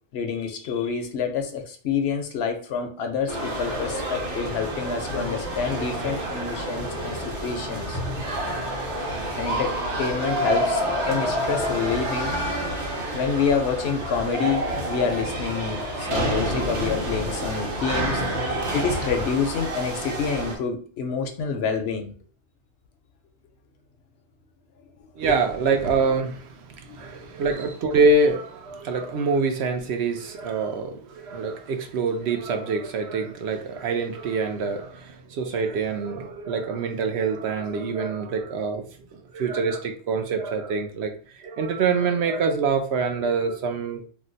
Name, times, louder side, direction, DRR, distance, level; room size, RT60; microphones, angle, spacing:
voice 1, 0.1-8.0 9.4-12.4 13.1-18.2 18.7-22.2 26.8-27.1, left 6 dB, 70° left, 4 dB, 0.8 m, -28 dB
sound 1, 3.3-20.6, right 1 dB, 90° right, 1.2 m, -28 dB
voice 2, 25.2-38.9 39.1-44.0, right 4 dB, 70° right, 5 dB, 0.8 m, -25 dB
2.7 x 2.1 x 3.8 m, 0.42 s
omnidirectional pair, 1.2 m